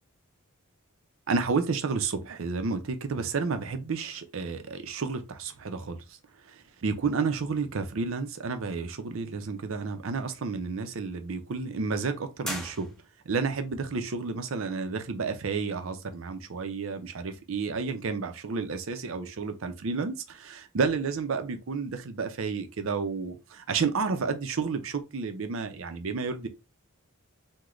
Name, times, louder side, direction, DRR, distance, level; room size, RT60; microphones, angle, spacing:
voice 1, 1.3-6.2 6.5-12.9 13.3-26.5, right 4 dB, 65° right, 0.5 m, -31 dB
sound 1, 12.4-13.4, equal, ahead, 0.6 m, -38 dB
3.1 x 2.1 x 3.6 m
head